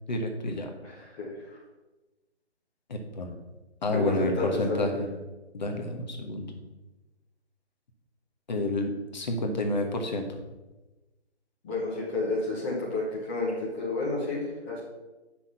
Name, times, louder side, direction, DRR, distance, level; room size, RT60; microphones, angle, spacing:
voice 1, 0.1-0.7 2.9-3.3 3.8-5.1 5.5-6.5 8.5-10.3, left 2 dB, 40° left, 3 dB, 1.3 m, -29 dB
voice 2, 0.8-1.6 3.9-4.9 11.6-14.8, left 2 dB, 10° left, -6 dB, 1.1 m, -31 dB
8.4 x 6.0 x 5.6 m, 1.1 s
hypercardioid pair, 165°, 34 cm